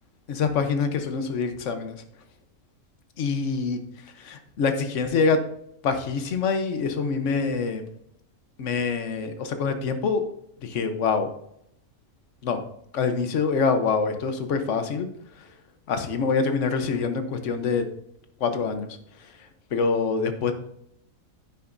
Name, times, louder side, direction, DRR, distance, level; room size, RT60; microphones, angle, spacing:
voice 1, 0.3-2.0 3.2-3.8 4.2-5.4 5.8-7.8 8.6-10.2 10.6-11.3 12.4-12.6 12.9-15.1 15.9-17.9 18.4-18.9 19.7-20.5, left 5 dB, 65° left, 8 dB, 1.2 m, -25 dB
10.5 x 9.1 x 2.6 m, 0.72 s
omnidirectional pair, 1.4 m